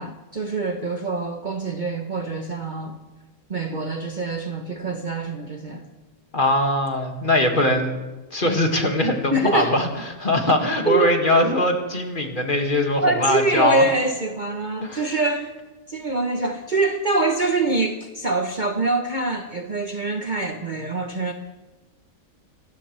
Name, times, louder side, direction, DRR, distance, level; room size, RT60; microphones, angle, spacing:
voice 1, 0.0-2.9 3.5-5.9 9.3-9.8 10.8-11.1 13.0-15.5 15.9-21.3, right 3 dB, 40° right, 4 dB, 0.9 m, -24 dB
voice 2, 6.3-8.0 8.3-13.9 14.8-15.0, left 1 dB, 35° left, 2 dB, 2.0 m, -21 dB
27.5 x 13.5 x 3.3 m, 1.2 s
omnidirectional pair, 1.5 m